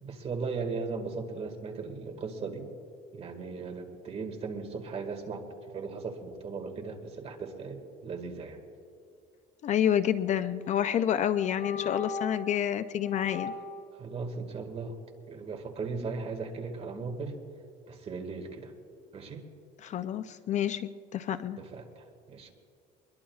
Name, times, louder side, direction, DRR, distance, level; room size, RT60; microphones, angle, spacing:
voice 1, 0.0-2.7 3.1-5.5 5.7-8.6 13.4-13.5 13.9-15.0 15.3-17.4 17.9-18.7 19.1-19.4 21.6-22.5, right 4 dB, 35° right, 4 dB, 1.9 m, -37 dB
voice 2, 9.6-13.5 19.8-21.6, left 10 dB, 40° left, 12 dB, 0.4 m, -28 dB
sound 1, 10.8-10.9 11.4-12.5 13.0-13.8, left 5 dB, 70° left, 3.6 m, -38 dB
23.0 x 21.5 x 2.4 m, 2.4 s
cardioid pair, 140°, 18 cm